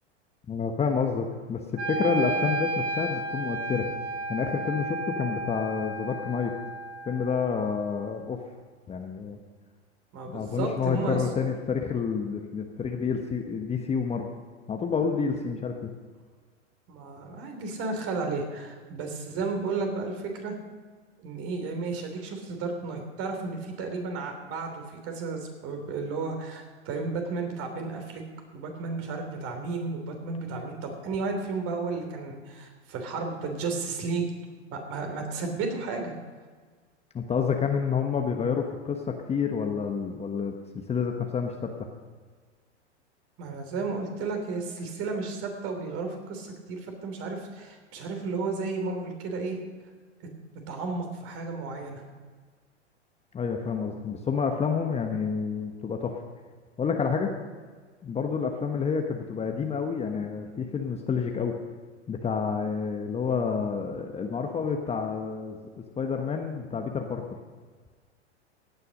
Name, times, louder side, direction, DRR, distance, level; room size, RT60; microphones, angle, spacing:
voice 1, 0.5-3.9 4.3-6.5 7.1-8.4 8.9-9.4 10.2-14.3 14.7-15.9 37.1-39.0 39.3-40.5 40.9-41.7 53.3-56.2 56.8-57.3 58.0-61.5 62.1-65.6 66.0-67.2, left 6 dB, 20° left, 3 dB, 1.1 m, -29 dB
Wind instrument woodwind instrument, 1.8-7.8, right 2 dB, 70° right, 2.8 m, -33 dB
voice 2, 10.1-11.2 16.9-20.6 21.2-28.2 28.5-34.3 34.7-36.1 43.4-49.6 50.7-52.0, right 4 dB, 40° right, 4 dB, 3.3 m, -33 dB
16.5 x 9.6 x 5.3 m, 1.5 s
figure-of-eight pair, 100°, 35 cm